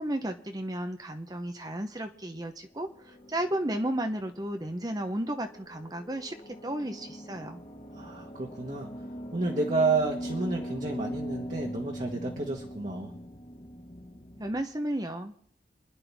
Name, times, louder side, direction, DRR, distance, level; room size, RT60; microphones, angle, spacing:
voice 1, 0.0-7.6 14.4-15.3, right 1 dB, 20° right, 6 dB, 0.9 m, -33 dB
sound 1, 2.7-14.6, equal, 35° left, 1.7 m, -41 dB
voice 2, 7.9-8.9 9.3-13.1, right 3 dB, 45° right, -1 dB, 1.5 m, -30 dB
27.0 x 10.5 x 3.6 m, 0.64 s
head